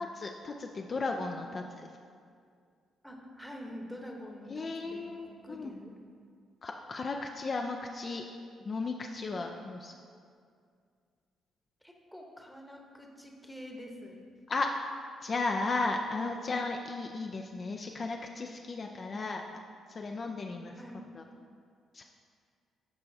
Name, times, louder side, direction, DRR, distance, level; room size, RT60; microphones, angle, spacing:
voice 1, 0.0-1.9 4.5-5.7 6.6-8.2 8.7-9.9 14.5-14.7 15.2-19.4 19.9-20.7 21.2-21.3 21.9-22.0, left 3 dB, 40° left, 2 dB, 0.4 m, -35 dB
voice 2, 3.0-5.9 11.8-14.2 20.8-21.1, equal, ahead, 1 dB, 0.9 m, -46 dB
12.5 x 4.5 x 2.7 m, 2.2 s
cardioid pair, 90°, 0 cm